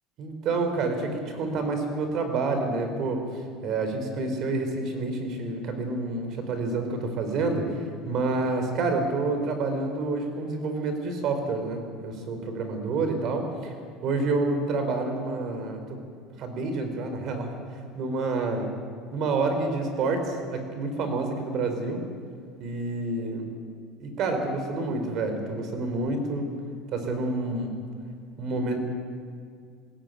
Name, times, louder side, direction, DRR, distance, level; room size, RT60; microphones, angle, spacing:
voice 1, 0.2-13.7 14.0-15.8 16.4-17.5 17.9-18.7 19.1-22.0 22.6-23.5 24.0-26.5 26.9-27.7 28.4-28.8, right 3 dB, 45° right, 6 dB, 4.4 m, -28 dB
21.5 x 16.5 x 9.3 m, 2.2 s
cardioid pair, 140°, 0 cm